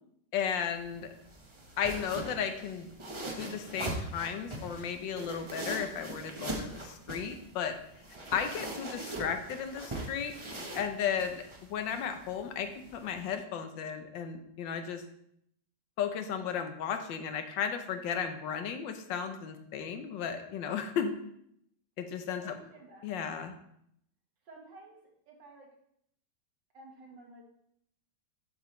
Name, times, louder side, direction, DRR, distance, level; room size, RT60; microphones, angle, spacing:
voice 1, 0.3-1.1 1.8-2.9 3.4-7.8 8.3-10.3 10.7-15.0 16.0-21.1 22.0-22.5 23.0-23.5, left 7 dB, 85° left, 7 dB, 1.5 m, -34 dB
sound 1, 0.7-13.3, right 2 dB, 25° right, 0.7 m, -42 dB
voice 2, 22.4-23.1 24.4-25.0 25.3-25.7 26.7-27.4, right 2 dB, 75° right, 0 dB, 2.2 m, -52 dB
7.9 x 6.9 x 3.2 m, 0.72 s
omnidirectional pair, 2.0 m